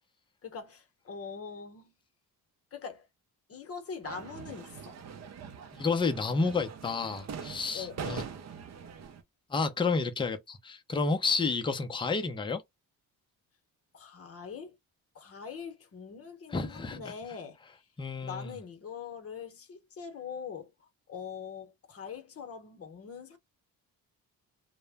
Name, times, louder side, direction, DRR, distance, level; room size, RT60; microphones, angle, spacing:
voice 1, 0.4-1.9 2.7-3.1 3.5-5.0 7.7-8.2 13.9-14.8 15.1-17.8 18.2-23.4, left 6 dB, 40° left, 0.8 m, -43 dB
sound 1, 4.0-9.2, right 6 dB, 45° right, 0.5 m, -43 dB
voice 2, 5.7-8.2 9.5-12.6 16.5-17.1 18.0-18.5, left 4 dB, 15° left, 0.4 m, -30 dB
2.1 x 2.0 x 3.3 m
cardioid pair, 115°, 36 cm